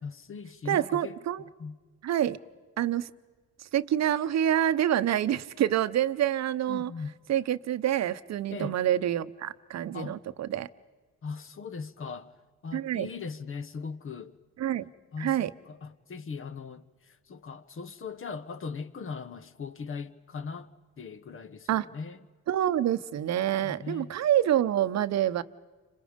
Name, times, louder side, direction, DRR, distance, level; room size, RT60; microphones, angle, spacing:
voice 1, 0.0-1.2 1.6-1.8 6.7-7.1 8.5-8.8 9.9-10.2 11.2-12.3 12.6-14.4 15.1-20.7 21.0-22.2 23.6-24.1, left 5 dB, 45° left, 1.2 m, -39 dB
voice 2, 0.7-1.4 2.0-2.4 2.8-3.1 3.6-6.9 7.3-10.7 12.7-13.1 14.6-14.9 15.2-15.5 21.7-21.9 22.5-25.4, right 11 dB, 60° right, 0.9 m, -27 dB
30.0 x 26.5 x 5.2 m
cardioid pair, 90°, 30 cm